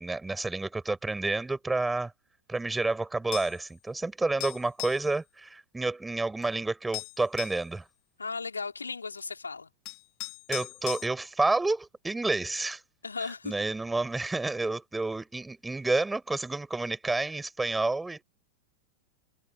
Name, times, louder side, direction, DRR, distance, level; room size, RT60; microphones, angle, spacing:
voice 1, 0.0-2.1 2.5-7.9 10.5-12.8 13.4-18.2, right 3 dB, 10° right, 5.4 m, -30 dB
sound 1, 3.3-3.6 4.4-5.1 6.4-6.5 6.9-7.6 9.2-9.3 9.9-11.1, left 22 dB, 40° left, 2.1 m, -38 dB
voice 2, 8.2-9.7 13.0-13.5, left 4 dB, 75° left, 3.5 m, -36 dB
figure-of-eight pair, 90°, 0 cm